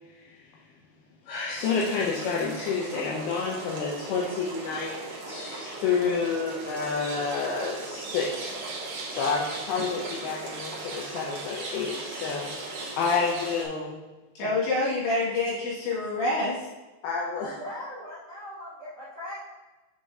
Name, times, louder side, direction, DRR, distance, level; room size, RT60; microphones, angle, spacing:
voice 1, 1.3-5.0 5.3-8.5 9.1-14.0 14.4-14.5 17.0-17.5, left 5 dB, 90° left, -3 dB, 2.2 m, -29 dB
sound 1, 1.6-13.6, right 2 dB, 75° right, 1.9 m, -38 dB
voice 2, 14.4-16.7, left 2 dB, 70° left, -7 dB, 4.1 m, -27 dB
voice 3, 17.4-19.4, left 1 dB, 55° right, -12 dB, 1.7 m, -39 dB
7.0 x 6.3 x 2.7 m, 1.2 s
omnidirectional pair, 5.4 m